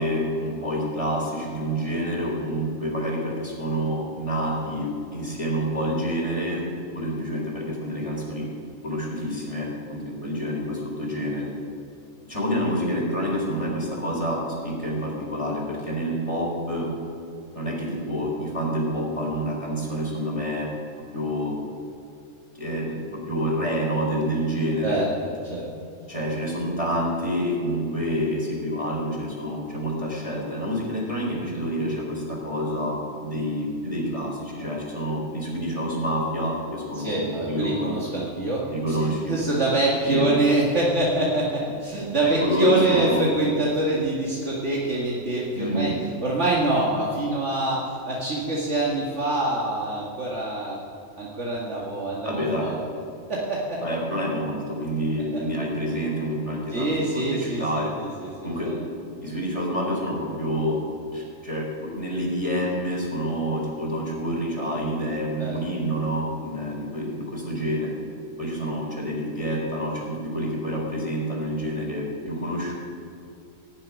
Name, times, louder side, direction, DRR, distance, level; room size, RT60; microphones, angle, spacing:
voice 1, 0.0-6.6 6.9-8.5 8.8-11.5 12.3-16.9 17.5-20.7 21.1-21.5 22.5-25.0 26.1-37.9 38.7-39.4 40.0-40.3 42.2-43.3 45.6-45.9 52.2-52.8 53.8-57.9 58.4-58.7 59.2-60.8 61.1-68.0 68.4-72.7, equal, 25° left, -2 dB, 3.7 m, -28 dB
voice 2, 37.0-45.9 46.2-50.8 51.2-52.8 53.3-53.8 55.3-55.4 56.7-57.8 58.2-58.8 65.4-65.5, right 2 dB, 65° right, -5 dB, 2.3 m, -25 dB
16.5 x 7.3 x 9.6 m, 2.5 s
omnidirectional pair, 1.3 m